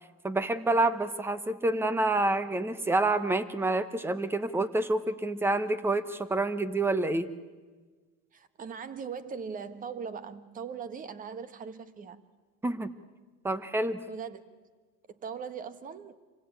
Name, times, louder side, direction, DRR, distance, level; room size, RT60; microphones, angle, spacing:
voice 1, 0.2-7.3 12.6-12.9 13.4-14.0, right 2 dB, 5° right, 14 dB, 0.9 m, -28 dB
voice 2, 8.3-12.2 14.1-14.4 15.1-16.2, right 6 dB, 25° right, 13 dB, 1.3 m, -40 dB
27.5 x 24.0 x 8.9 m, 1.4 s
cardioid pair, 165°, 35 cm